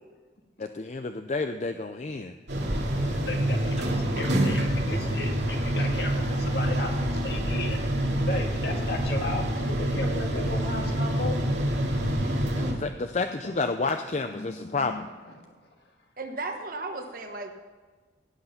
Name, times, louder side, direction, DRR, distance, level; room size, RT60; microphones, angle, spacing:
voice 1, 0.6-2.3 12.6-15.1, left 3 dB, 40° left, 8 dB, 0.4 m, -30 dB
sound 1, 2.5-12.7, right 1 dB, 80° right, 2.4 m, -26 dB
voice 2, 3.0-7.8 8.3-11.4 13.4-13.5 14.3-15.1, left 2 dB, 65° left, 2 dB, 1.9 m, -36 dB
voice 3, 12.2-13.0 16.2-17.5, right 2 dB, 50° right, 5 dB, 1.3 m, -36 dB
16.5 x 7.9 x 5.7 m, 1.4 s
head